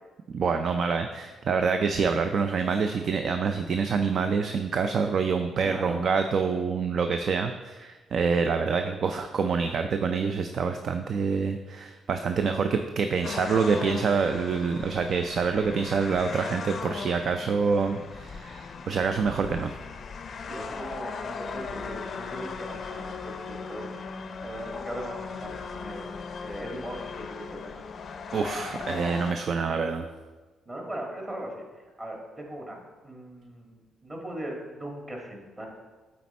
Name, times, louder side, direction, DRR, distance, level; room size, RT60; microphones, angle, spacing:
voice 1, 0.3-19.7 28.3-30.1, right 5 dB, 55° right, 7 dB, 0.4 m, -26 dB
voice 2, 5.6-6.0 20.4-23.9 24.4-26.1 26.4-27.7 30.7-31.6 32.0-32.8 33.0-35.7, right 1 dB, 25° right, 0 dB, 1.7 m, -39 dB
sound 1, 13.2-29.3, left 5 dB, 50° left, 0.4 m, -38 dB
7.8 x 4.2 x 4.2 m, 1.3 s
cardioid pair, 90°, 0 cm